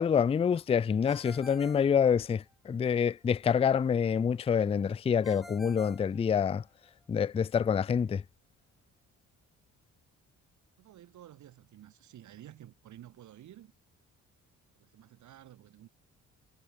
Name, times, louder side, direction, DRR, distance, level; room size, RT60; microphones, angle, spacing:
voice 1, 0.0-6.6 7.1-8.2, left 7 dB, 20° left, 0.3 m, -27 dB
Ringtone, 1.1-2.7 5.2-6.9, equal, ahead, 5.5 m, -51 dB
voice 2, 10.8-13.7 14.8-15.9, right 12 dB, 75° right, 3.1 m, -52 dB
cardioid pair, 90°, 30 cm